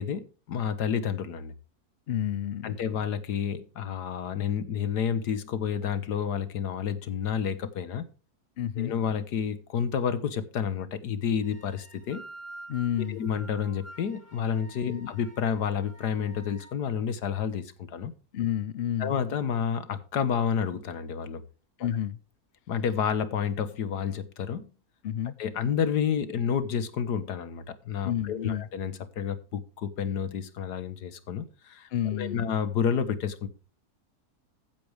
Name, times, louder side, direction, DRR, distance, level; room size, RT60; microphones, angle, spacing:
voice 1, 0.0-1.5 2.6-8.1 8.8-12.2 13.1-18.1 19.0-21.4 22.7-24.6 25.4-33.5, left 7 dB, 90° left, 1.8 m, -30 dB
voice 2, 2.1-2.8 8.6-8.9 12.7-13.2 14.9-15.1 18.3-19.2 21.8-22.2 25.0-25.3 28.0-28.6 31.9-32.5, left 10 dB, 60° left, 0.6 m, -30 dB
sound 1, 11.4-16.7, right 1 dB, 20° left, 2.9 m, -48 dB
14.5 x 8.9 x 3.4 m
omnidirectional pair, 1.7 m